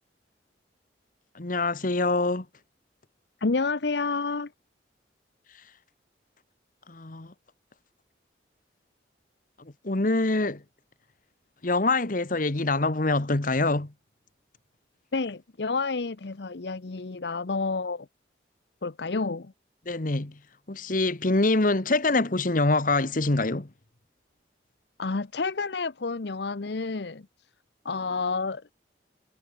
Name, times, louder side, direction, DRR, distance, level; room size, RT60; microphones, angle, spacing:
voice 1, 1.3-2.5 6.9-7.3 9.6-10.6 11.6-13.9 19.8-20.4 20.7-23.7, left 2 dB, 45° left, 1.3 m, -25 dB
voice 2, 3.4-4.5 15.1-18.1 18.8-19.5 25.0-27.2 27.8-28.6, left 4 dB, 65° left, 0.8 m, -29 dB
head